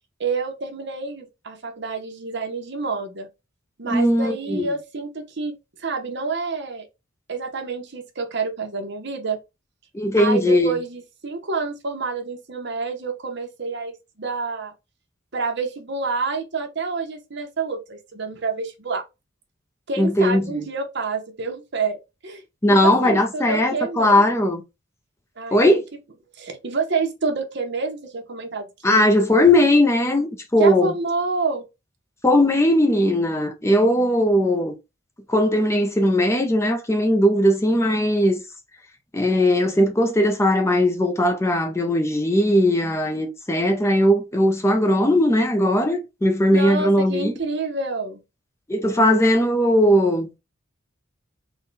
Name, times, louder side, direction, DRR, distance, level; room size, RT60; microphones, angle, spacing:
voice 1, 0.2-3.3 3.8-6.9 7.3-9.4 10.2-14.7 15.3-19.0 19.9-22.0 22.2-22.4 22.7-24.5 25.4-25.7 26.4-29.1 30.6-31.7 46.5-48.2, right 4 dB, 60° right, 0.9 m, -28 dB
voice 2, 3.8-4.7 9.9-10.8 20.0-20.7 22.6-24.6 25.5-25.8 28.8-30.9 32.2-34.8 35.3-38.4 39.1-47.3 48.7-50.3, left 1 dB, 15° left, 0.5 m, -19 dB
3.7 x 2.2 x 3.9 m
head